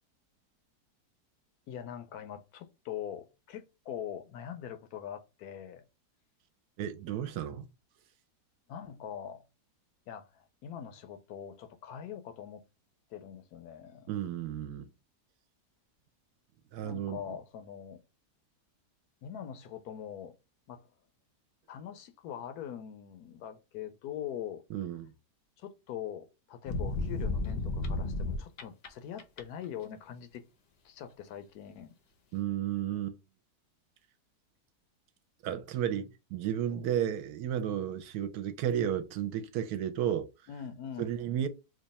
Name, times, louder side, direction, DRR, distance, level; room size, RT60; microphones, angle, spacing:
voice 1, 1.7-5.9 8.7-9.4 10.1-12.7 13.1-14.1 16.8-18.0 19.2-20.3 20.7-20.9 21.7-24.6 25.6-30.4 30.8-31.9 36.7-36.9 40.5-41.2, left 9 dB, 75° left, 1.0 m, -43 dB
voice 2, 6.8-7.6 14.1-14.9 16.7-17.2 24.7-25.1 32.3-33.2 35.4-40.3 41.0-41.5, right 10 dB, 75° right, 1.0 m, -33 dB
sound 1, 26.7-28.9 29.2-29.6, left 2 dB, 55° left, 0.7 m, -32 dB
3.0 x 2.3 x 4.0 m
omnidirectional pair, 1.7 m